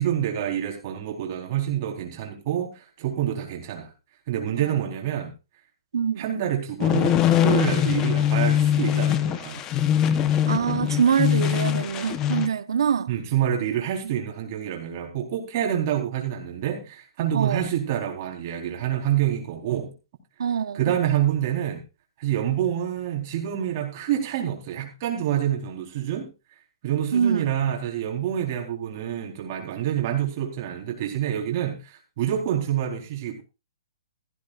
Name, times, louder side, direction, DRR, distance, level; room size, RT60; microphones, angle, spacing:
voice 1, 0.0-3.9 4.3-5.3 6.2-9.6 13.1-19.9 20.7-21.8 22.2-26.3 26.8-33.4, right 10 dB, 35° right, 4.2 m, -27 dB
voice 2, 5.9-6.2 10.5-13.1 17.3-17.7 20.4-20.8 27.1-27.5, right 7 dB, 75° right, 1.1 m, -24 dB
sound 1, 6.8-12.5, left 10 dB, 20° left, 1.0 m, -22 dB
16.0 x 15.5 x 2.5 m
hypercardioid pair, 165°, 3 cm